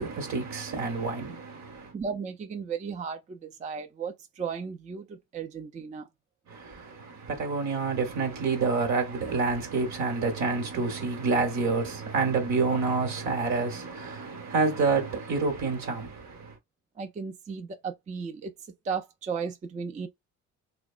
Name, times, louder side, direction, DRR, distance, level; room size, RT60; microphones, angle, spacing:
voice 1, 0.0-1.9 6.5-16.6, right 4 dB, 70° right, 1.2 m, -28 dB
voice 2, 1.9-6.1 17.0-18.5 18.8-20.1, right 6 dB, 25° right, 0.4 m, -35 dB
2.8 x 2.2 x 2.4 m
cardioid pair, 90°, 30 cm